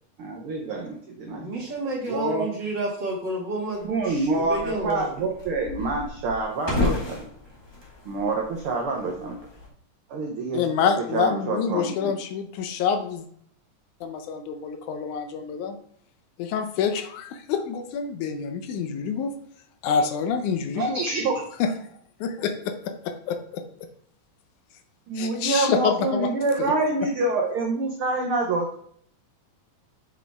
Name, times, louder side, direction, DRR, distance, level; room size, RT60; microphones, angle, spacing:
voice 1, 0.2-1.4 2.1-2.5 3.8-7.3 8.0-9.3 10.1-10.6 11.1-12.1 20.8-21.4 25.1-28.7, right 3 dB, 70° right, 1 dB, 1.3 m, -26 dB
voice 2, 1.3-5.3, right 1 dB, 40° right, -3 dB, 2.1 m, -31 dB
sound 1, 3.7-9.7, left 3 dB, 15° left, 1.0 m, -33 dB
voice 3, 10.5-13.3 14.0-15.8 16.4-19.3 19.8-21.0 21.6-21.7 22.2-23.6 25.2-26.3 26.6-26.7, left 6 dB, 80° left, 8 dB, 2.1 m, -27 dB
7.3 x 6.2 x 3.5 m, 0.64 s
omnidirectional pair, 3.6 m